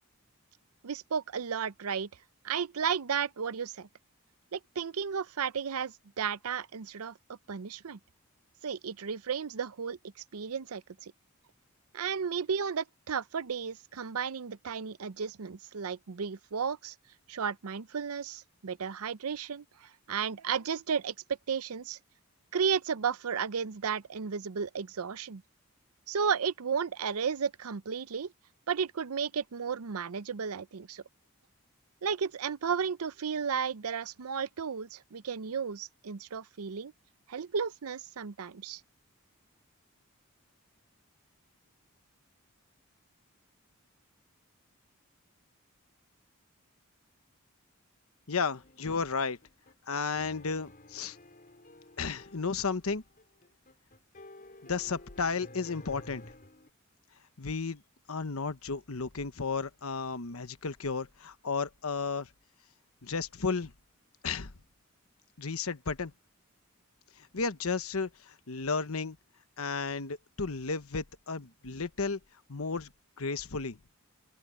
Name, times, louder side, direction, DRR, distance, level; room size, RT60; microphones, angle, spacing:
voice 1, 0.8-2.1 2.4-3.9 4.5-7.2 7.5-8.0 8.6-10.0 10.3-11.1 11.9-16.9 17.3-21.1 21.5-22.0 22.5-25.4 26.1-28.3 28.7-31.0 32.0-36.9 37.3-38.8, right 6 dB, 90° right, 0.6 m, -33 dB
voice 2, 48.3-49.4 49.9-51.2 52.0-53.0 54.6-56.2 57.4-57.8 58.1-62.3 63.0-63.7 64.2-64.5 65.4-66.1 67.2-69.2 69.6-72.2 72.5-72.9 73.2-73.8, left 4 dB, 80° left, 1.1 m, -33 dB
sound 1, 48.5-56.7, left 1 dB, 40° left, 6.2 m, -53 dB
open air
head